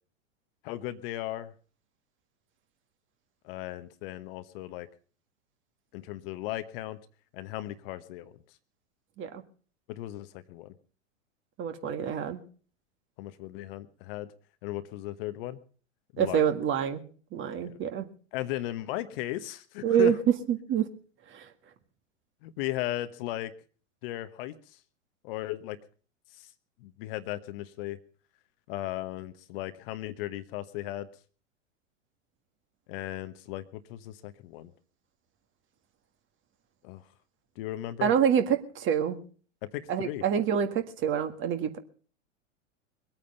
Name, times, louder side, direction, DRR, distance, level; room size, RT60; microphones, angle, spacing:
voice 1, 0.6-1.5 3.4-4.9 5.9-7.0 7.3-8.3 9.9-10.7 13.2-14.3 14.6-15.6 16.1-16.5 17.6-17.8 18.3-20.2 22.4-23.5 24.0-24.8 25.2-25.8 26.4-26.5 26.8-28.0 28.7-31.1 32.9-34.7 36.8-37.0 37.6-38.1 39.6-40.2, left 15 dB, 45° left, 12 dB, 1.1 m, -36 dB
voice 2, 11.6-12.4 16.2-17.0 17.3-18.0 19.8-20.2 20.5-20.8 21.3-21.4 38.0-39.2 39.9-41.8, right 8 dB, 30° right, 8 dB, 1.8 m, -26 dB
22.0 x 9.0 x 5.5 m, 0.41 s
hypercardioid pair, 105°, 38 cm